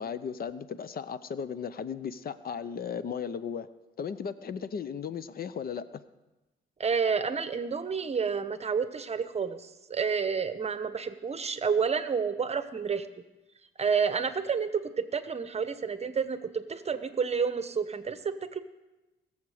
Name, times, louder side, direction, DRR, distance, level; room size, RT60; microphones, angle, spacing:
voice 1, 0.0-3.7 4.0-5.8, left 7 dB, 50° left, 14 dB, 0.6 m, -36 dB
voice 2, 6.8-13.1 13.8-14.7 15.1-18.6, right 6 dB, 30° right, 11 dB, 0.9 m, -30 dB
20.5 x 7.3 x 4.9 m, 1.0 s
cardioid pair, 90°, 20 cm